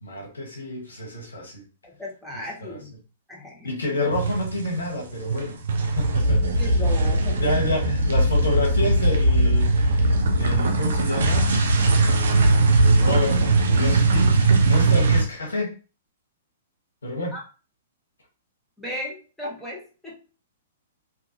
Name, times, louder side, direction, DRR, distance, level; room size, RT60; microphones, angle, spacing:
voice 1, 0.0-1.6 2.6-2.8 3.6-5.6 5.9-6.6 7.4-11.5 11.8-15.7 17.0-17.4, left 1 dB, 85° left, 0 dB, 1.2 m, -29 dB
voice 2, 1.8-2.9 3.3-3.7 6.2-7.5 14.7-14.9 17.3-17.4 18.8-20.1, left 1 dB, ahead, -5 dB, 1.1 m, -36 dB
sound 1, 4.1-4.9 5.1-15.2, right 2 dB, 65° right, 0.6 m, -20 dB
2.7 x 2.5 x 2.6 m, 0.35 s
hypercardioid pair, 115°, 0 cm